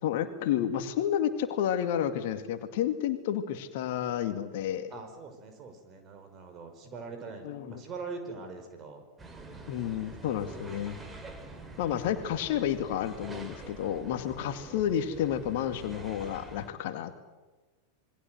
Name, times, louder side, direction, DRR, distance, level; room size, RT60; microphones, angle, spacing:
voice 1, 0.0-4.9 7.4-7.7 9.7-11.0 11.8-17.2, left 10 dB, 50° left, 8 dB, 2.1 m, -31 dB
voice 2, 4.9-9.6, right 4 dB, 30° right, 6 dB, 5.6 m, -43 dB
sound 1, 9.2-16.7, right 2 dB, 15° right, 3.7 m, -46 dB
27.5 x 22.0 x 7.9 m, 1.2 s
figure-of-eight pair, 90°, 0 cm